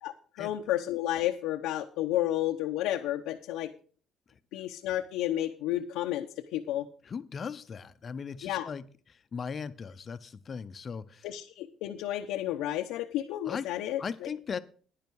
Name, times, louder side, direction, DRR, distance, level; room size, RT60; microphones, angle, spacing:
voice 1, 0.4-3.7 4.5-6.3 6.5-6.8 8.4-8.7 11.2-14.3, left 13 dB, 85° left, 3 dB, 0.8 m, -31 dB
voice 2, 7.0-11.3 13.4-13.7 14.0-14.6, left 6 dB, 35° left, 12 dB, 0.7 m, -38 dB
10.5 x 10.0 x 4.7 m, 0.42 s
cardioid pair, 115°, 0 cm